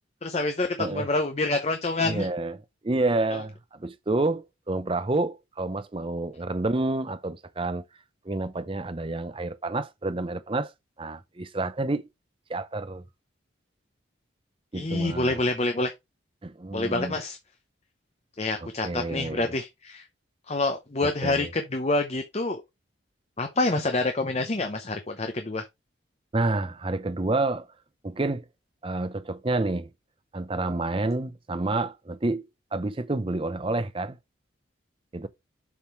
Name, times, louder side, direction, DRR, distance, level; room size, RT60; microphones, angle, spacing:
voice 1, 0.2-2.3 3.3-3.4 14.7-15.9 16.7-17.4 18.4-20.0 20.5-22.6 23.4-25.6, left 2 dB, 35° left, 0.7 m, -27 dB
voice 2, 2.0-2.6 2.8-7.8 8.3-10.7 11.0-12.1 12.5-13.0 14.7-15.4 16.4-17.2 18.6-19.5 21.0-21.5 26.3-27.7 28.0-28.4 28.8-29.9 30.3-32.5 32.7-34.2 35.1-35.3, right 2 dB, 25° right, 0.6 m, -29 dB
7.2 x 3.7 x 4.6 m
head